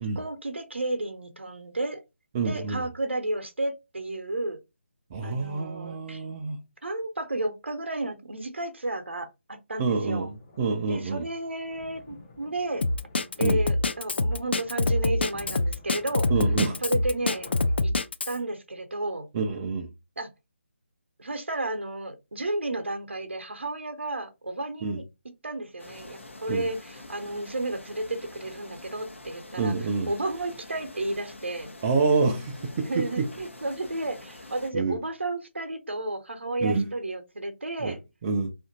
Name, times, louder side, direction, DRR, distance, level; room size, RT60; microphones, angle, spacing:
voice 1, 0.2-2.0 2.4-4.6 5.2-6.2 6.8-10.3 10.9-12.9 13.4-16.3 16.8-17.5 17.8-17.9 18.3-19.3 20.2-20.3 21.2-25.0 25.4-29.7 30.1-31.7 32.8-38.0, right 2 dB, 70° right, 0.7 m, -32 dB
voice 2, 2.3-2.8 5.1-6.6 9.8-11.2 13.4-13.6 16.3-16.8 19.3-19.9 24.8-25.0 26.5-26.7 29.6-30.1 31.8-33.3 34.7-35.0 36.6-36.9 37.8-37.9 38.2-38.5, right 4 dB, 20° right, 0.3 m, -27 dB
sound 1, 10.2-17.8, left 2 dB, 25° left, 0.7 m, -49 dB
Drum kit, 12.8-18.4, left 2 dB, 55° left, 0.4 m, -25 dB
sound 2, 25.8-34.7, left 2 dB, 80° left, 0.7 m, -46 dB
2.7 x 2.5 x 2.6 m
figure-of-eight pair, 150°, 7 cm